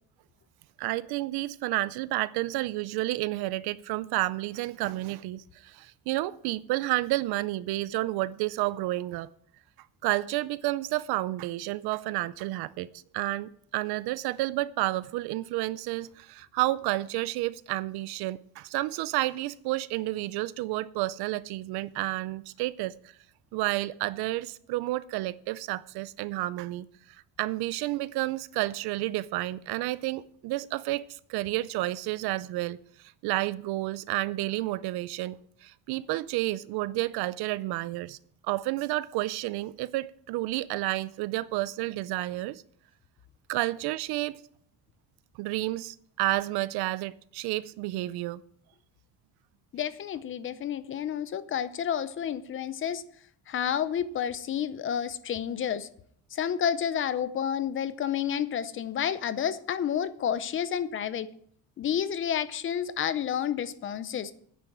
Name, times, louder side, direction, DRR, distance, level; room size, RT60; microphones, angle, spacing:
voice 1, 0.8-9.3 10.0-22.9 23.5-38.2 38.4-42.6 43.5-44.4 45.4-48.4, right 17 dB, 90° right, 0.5 m, -31 dB
voice 2, 49.7-53.0 53.5-55.9 56.3-61.3 61.8-64.3, left 9 dB, 35° left, 0.6 m, -30 dB
9.7 x 6.8 x 8.5 m
cardioid pair, 175°, 37 cm